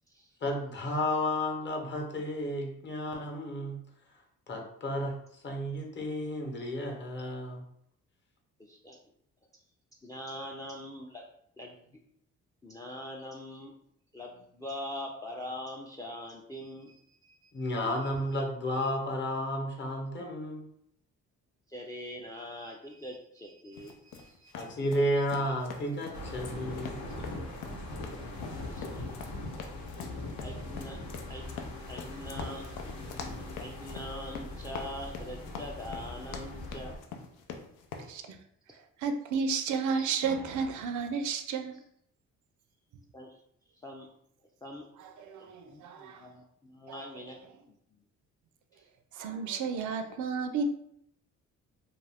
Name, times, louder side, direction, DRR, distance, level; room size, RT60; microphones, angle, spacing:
voice 1, 0.4-3.8 4.5-7.6 17.5-20.7 24.5-27.0 27.3-27.4, left 1 dB, 40° left, 0.8 m, -32 dB
voice 2, 8.6-9.0 10.0-11.2 11.6-12.0 12.6-13.7 14.1-17.6 21.7-24.7 28.7-29.3 30.4-31.0 31.3-31.5 31.9-32.7 33.6-37.0 38.2-38.3 40.0-40.1 43.1-43.4 43.7-44.1 44.6-44.9 45.4-47.4 47.7-48.0 48.7-48.9, left 1 dB, 10° left, 0.4 m, -43 dB
sound 1, 23.8-38.1, left 6 dB, 85° left, 0.5 m, -44 dB
sound 2, 26.1-37.0, left 2 dB, 70° left, 0.8 m, -41 dB
voice 3, 38.7-41.8 45.0-46.3 46.9-47.0 49.1-50.6, right 5 dB, 75° right, 0.5 m, -32 dB
2.5 x 2.3 x 3.3 m
cardioid pair, 90°, 30 cm